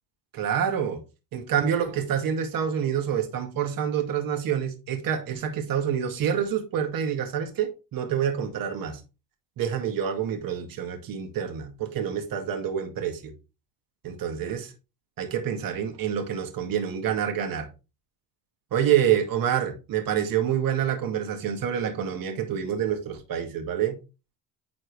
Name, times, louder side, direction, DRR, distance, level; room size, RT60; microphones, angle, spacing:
voice 1, 0.3-1.0 1.3-9.0 9.6-13.3 14.0-14.7 15.2-17.7 18.7-24.0, right 9 dB, 55° right, 2.1 m, -27 dB
9.7 x 4.3 x 3.4 m
cardioid pair, 110°, 41 cm